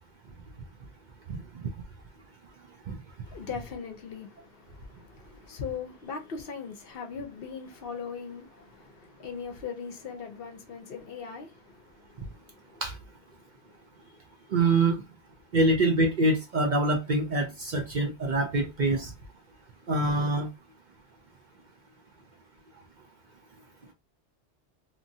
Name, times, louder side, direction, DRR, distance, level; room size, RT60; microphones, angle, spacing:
voice 1, 3.2-12.8 13.3-14.1, left 6 dB, 60° left, 0.8 m, -40 dB
voice 2, 14.5-15.0 15.5-19.1 19.9-20.5, right 2 dB, 50° right, 0.6 m, -25 dB
2.9 x 2.6 x 2.6 m
omnidirectional pair, 1.2 m